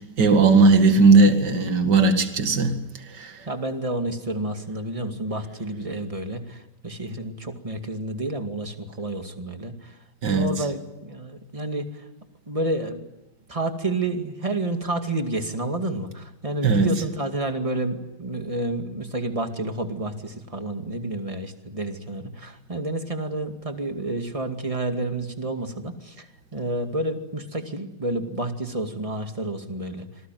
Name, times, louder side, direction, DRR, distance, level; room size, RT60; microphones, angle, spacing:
voice 1, 0.0-2.8 3.1-3.3 10.2-10.5 16.6-17.0, right 3 dB, 55° right, 2.7 m, -17 dB
voice 2, 3.5-10.0 10.3-12.1 12.5-13.0 13.5-30.1, right 2 dB, 15° right, 2.2 m, -30 dB
27.0 x 20.0 x 9.3 m
omnidirectional pair, 2.3 m